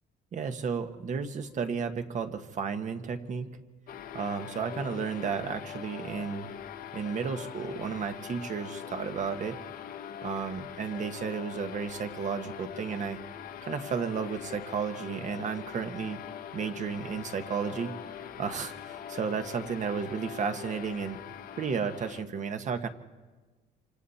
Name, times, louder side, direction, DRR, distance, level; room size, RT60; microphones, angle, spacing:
voice 1, 0.3-3.5 4.1-6.5 6.9-9.6 10.2-13.2 13.6-16.2 16.5-17.9 18.4-21.2 21.6-22.9, right 6 dB, 45° right, 7 dB, 1.4 m, -33 dB
sound 1, 3.9-22.2, left 9 dB, 60° left, 1.1 m, -42 dB
27.0 x 25.5 x 4.3 m, 1.3 s
cardioid pair, 110°, 17 cm